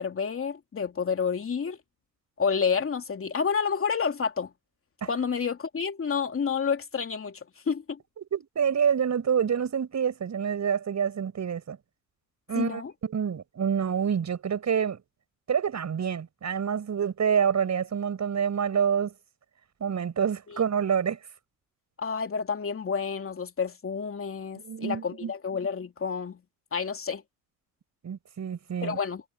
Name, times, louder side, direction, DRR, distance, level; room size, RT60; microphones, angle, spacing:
voice 1, 0.0-1.8 2.4-4.5 5.1-8.0 12.6-12.9 20.5-20.6 22.0-26.4 26.7-27.2 28.8-29.2, left 6 dB, 30° left, 2.8 m, -29 dB
voice 2, 8.2-11.8 12.5-15.0 15.5-19.1 19.8-21.2 24.6-25.3 28.0-29.0, right 7 dB, 40° right, 7.8 m, -27 dB
hypercardioid pair, 70°, 42 cm